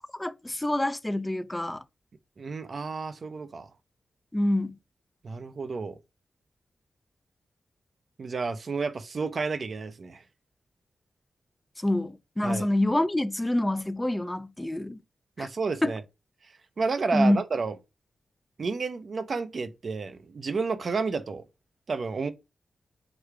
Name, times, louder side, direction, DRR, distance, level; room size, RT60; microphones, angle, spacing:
voice 1, 0.1-1.8 4.3-4.8 11.8-15.0 15.4-15.5 15.8-15.9 17.1-17.4, left 1 dB, 15° left, 0.4 m, -26 dB
voice 2, 2.4-3.7 5.2-6.0 8.2-10.2 12.4-12.7 15.4-16.0 16.4-17.7 18.6-21.4 21.9-22.3, right 4 dB, 60° right, 0.5 m, -31 dB
4.9 x 2.4 x 4.5 m
cardioid pair, 55°, 0 cm